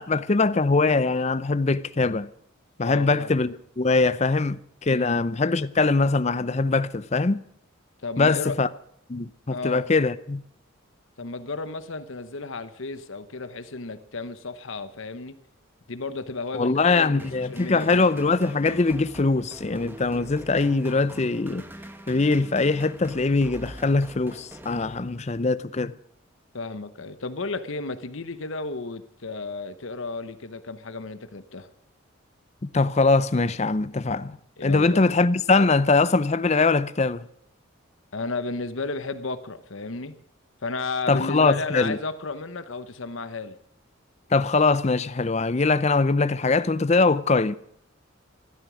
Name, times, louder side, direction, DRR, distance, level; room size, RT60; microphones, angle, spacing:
voice 1, 0.0-2.3 2.8-7.4 8.2-8.7 9.1-10.4 16.5-21.7 22.1-25.9 32.7-37.3 41.1-42.0 44.3-47.6, left 3 dB, 30° left, 0.5 m, -22 dB
voice 2, 2.8-3.3 4.9-5.2 8.0-8.6 9.5-9.8 11.2-15.4 15.9-18.0 26.5-31.7 34.6-35.1 38.1-40.1 40.6-43.5, left 3 dB, 70° left, 1.0 m, -33 dB
sound 1, 17.2-25.5, right 1 dB, 10° right, 1.0 m, -43 dB
14.5 x 12.5 x 6.2 m
head